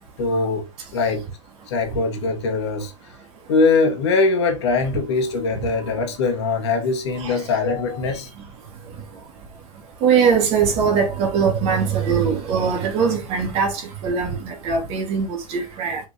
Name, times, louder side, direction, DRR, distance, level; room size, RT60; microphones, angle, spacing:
voice 1, 0.2-0.7 0.9-1.2 1.7-2.9 3.5-8.3, left 3 dB, 55° left, 2.4 m, -21 dB
voice 2, 10.0-16.0, right 6 dB, 40° right, 3.1 m, -21 dB
6.7 x 5.7 x 3.1 m
figure-of-eight pair, 95°, 17 cm